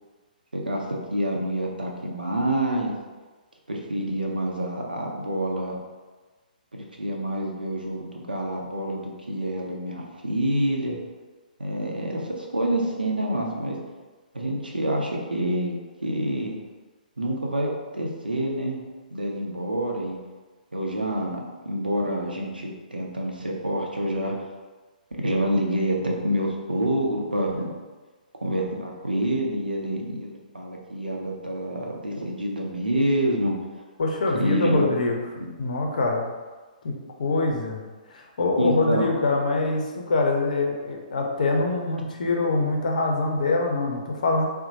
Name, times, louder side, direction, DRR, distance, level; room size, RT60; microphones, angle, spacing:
voice 1, 0.5-2.9 3.7-5.8 6.7-11.0 11.6-13.8 14.3-15.7 16.0-16.6 17.2-18.8 19.1-20.2 20.7-24.3 25.2-27.7 28.4-33.5 34.4-34.9 35.4-35.5 38.6-39.1, right 1 dB, 85° right, 0 dB, 0.6 m, -27 dB
voice 2, 34.0-35.2 35.6-36.3 36.8-36.9 37.2-37.8 38.1-44.5, left 3 dB, 60° left, 1 dB, 0.6 m, -24 dB
4.0 x 2.1 x 2.8 m, 1.3 s
figure-of-eight pair, 125°, 5 cm